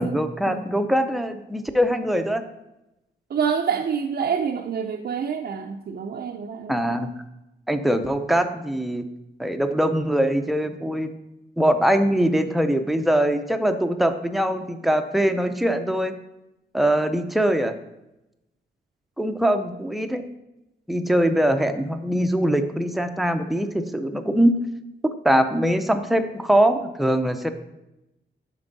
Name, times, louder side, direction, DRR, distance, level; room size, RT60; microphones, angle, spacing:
voice 1, 0.0-2.4 6.7-7.2 7.7-9.1 9.4-11.1 11.6-16.2 16.7-17.8 19.2-20.2 20.9-24.6 25.2-27.5, right 1 dB, ahead, 7 dB, 0.5 m, -22 dB
voice 2, 3.3-6.8, right 7 dB, 55° right, 3 dB, 0.5 m, -27 dB
7.1 x 5.3 x 4.0 m, 0.92 s
wide cardioid pair, 110°, 19 cm